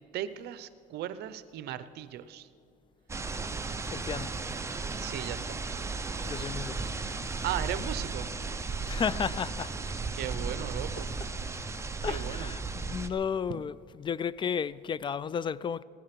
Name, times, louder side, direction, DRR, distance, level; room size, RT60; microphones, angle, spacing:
voice 1, 0.1-2.5 5.0-5.6 7.4-8.3 10.1-11.1 12.1-12.5, right 12 dB, 75° right, 0.7 m, -37 dB
sound 1, 3.1-13.1, right 4 dB, 15° right, 0.8 m, -35 dB
voice 2, 3.9-4.3 6.2-6.8 8.9-9.9 11.2-11.3 12.0-15.8, left 7 dB, 30° left, 0.3 m, -33 dB
16.0 x 11.5 x 5.9 m
cardioid pair, 110°, 17 cm